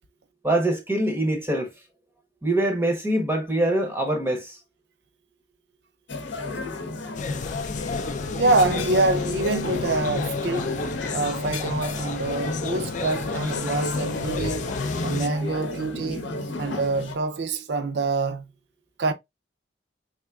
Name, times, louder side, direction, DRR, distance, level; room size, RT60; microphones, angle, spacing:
voice 1, 0.4-1.7 2.4-4.6, right 1 dB, 15° right, 0.6 m, -24 dB
sound 1, 6.1-17.1, left 2 dB, 85° left, 0.8 m, -32 dB
sound 2, 7.1-15.3, left 4 dB, 40° left, 0.4 m, -32 dB
voice 2, 8.4-10.8 11.1-14.7 15.0-16.3 16.6-18.5 19.0-19.1, right 3 dB, 65° right, 0.5 m, -26 dB
3.6 x 3.3 x 2.3 m
head